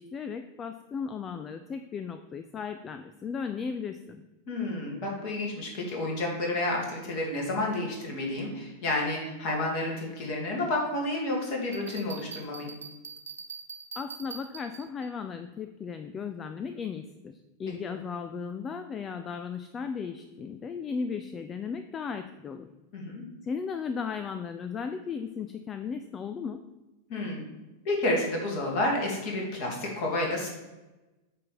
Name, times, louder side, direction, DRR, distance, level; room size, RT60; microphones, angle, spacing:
voice 1, 0.0-4.2 13.9-22.7 23.4-26.6, left 6 dB, 25° left, 9 dB, 0.4 m, -36 dB
voice 2, 4.5-12.7 22.9-23.2 27.1-27.4 27.8-30.5, left 2 dB, 45° left, -1 dB, 2.3 m, -30 dB
Bell, 11.7-15.1, right 6 dB, 70° right, 0.5 m, -43 dB
8.3 x 3.4 x 6.0 m, 1.1 s
figure-of-eight pair, 90°, 0 cm